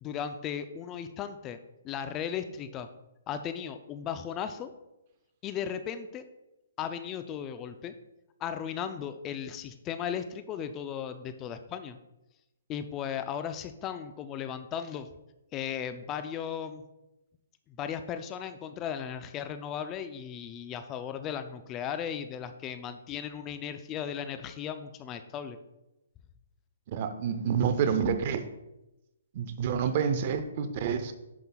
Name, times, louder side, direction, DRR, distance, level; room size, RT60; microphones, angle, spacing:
voice 1, 0.0-1.6 1.8-2.9 3.3-4.7 5.4-6.2 6.8-7.9 8.4-12.0 12.7-15.1 15.5-16.8 17.7-25.6, left 8 dB, 25° left, 9 dB, 0.4 m, -36 dB
voice 2, 26.9-28.5 29.3-31.1, right 7 dB, 45° right, 9 dB, 0.7 m, -28 dB
10.5 x 5.7 x 2.3 m, 0.93 s
hypercardioid pair, 140°, 0 cm